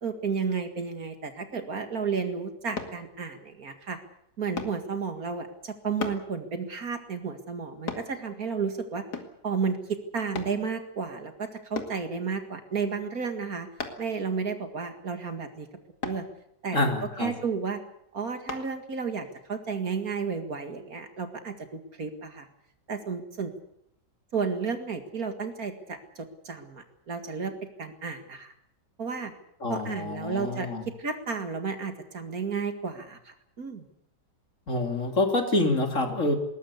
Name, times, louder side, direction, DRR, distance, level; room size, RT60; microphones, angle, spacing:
voice 1, 0.0-4.0 4.4-9.0 9.4-13.7 14.0-15.7 16.0-16.3 16.6-16.9 17.2-17.8 18.1-22.5 22.9-23.5 24.3-27.5 27.8-28.5 29.0-29.3 29.7-33.9, right 5 dB, 55° right, 7 dB, 2.5 m, -32 dB
sound 1, 2.8-3.0 4.6-4.8 6.0-6.3 7.9-8.1 9.1-9.4 10.4-10.6 11.8-12.0 13.8-14.1 16.0-16.3 18.5-18.7 19.3-19.4, left 4 dB, 65° left, 2.7 m, -35 dB
voice 2, 16.7-17.3 29.6-30.8 34.7-36.3, left 2 dB, 45° left, 4 dB, 3.2 m, -26 dB
20.0 x 19.5 x 8.4 m, 0.74 s
omnidirectional pair, 1.9 m